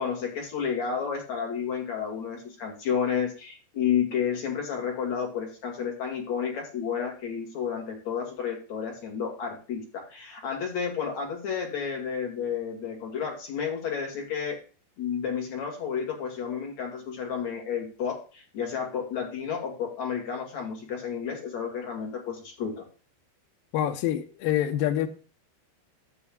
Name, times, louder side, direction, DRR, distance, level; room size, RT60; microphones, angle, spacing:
voice 1, 0.0-14.6 15.0-22.8, left 7 dB, 50° left, 2.9 m, -31 dB
voice 2, 23.7-25.1, left 11 dB, 85° left, 2.1 m, -26 dB
13.5 x 7.7 x 2.4 m
omnidirectional pair, 5.0 m